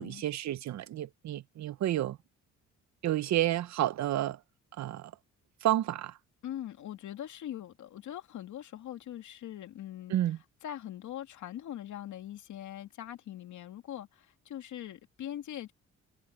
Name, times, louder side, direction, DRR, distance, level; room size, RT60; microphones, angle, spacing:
voice 1, 0.0-2.2 3.0-4.4 4.8-5.1 5.6-6.1 10.1-10.4, right 13 dB, 65° right, 0.8 m, -30 dB
voice 2, 6.4-10.1 10.6-15.7, left 11 dB, 75° left, 2.4 m, -42 dB
cardioid pair, 90°, 30 cm